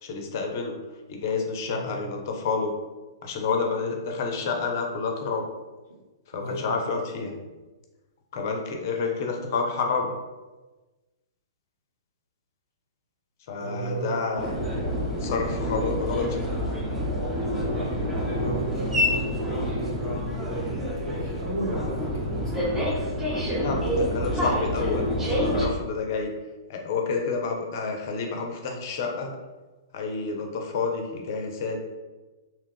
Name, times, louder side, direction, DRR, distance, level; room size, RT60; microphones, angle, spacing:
voice 1, 0.0-0.8 1.1-2.7 3.2-5.5 6.3-7.3 8.3-10.1 13.5-14.5 15.2-16.5 23.6-26.3 26.7-29.4 29.9-31.8, left 4 dB, 45° left, 2 dB, 0.5 m, -29 dB
voice 2, 1.7-2.0 6.3-6.7 13.6-14.2 18.2-22.8, right 1 dB, 70° right, -4 dB, 1.0 m, -35 dB
sound 1, 14.4-25.7, equal, 5° right, 0.6 m, -27 dB
2.8 x 2.4 x 3.4 m, 1.2 s
figure-of-eight pair, 110°, 2 cm